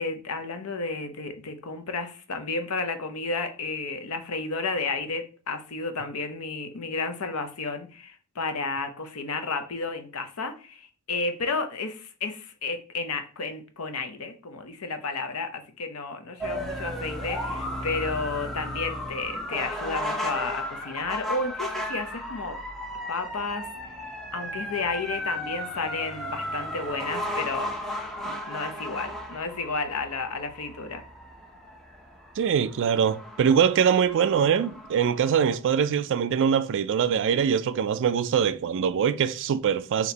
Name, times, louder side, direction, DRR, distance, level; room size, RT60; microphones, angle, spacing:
voice 1, 0.0-22.6 23.1-23.7 24.3-27.7 28.2-31.0, left 3 dB, 70° left, 0.7 m, -32 dB
sound 1, 16.4-35.6, left 1 dB, ahead, 0.7 m, -35 dB
voice 2, 32.4-40.1, right 7 dB, 60° right, 0.3 m, -23 dB
4.2 x 2.9 x 4.0 m
head